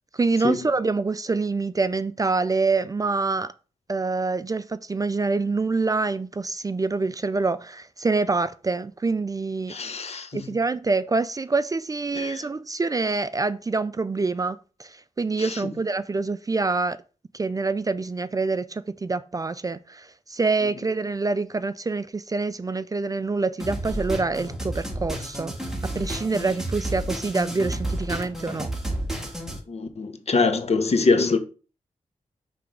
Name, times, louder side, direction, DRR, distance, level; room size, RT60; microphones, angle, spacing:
voice 1, 0.1-3.5 3.9-9.8 10.3-17.0 17.3-25.6 26.0-28.7, right 3 dB, 30° right, 0.4 m, -26 dB
voice 2, 9.7-10.4 12.1-12.4 15.4-15.6 29.7-31.4, left 4 dB, 55° left, 1.0 m, -24 dB
sound 1, 23.6-29.6, right 1 dB, 5° right, 1.7 m, -31 dB
5.9 x 3.4 x 5.1 m
cardioid pair, 70°, 13 cm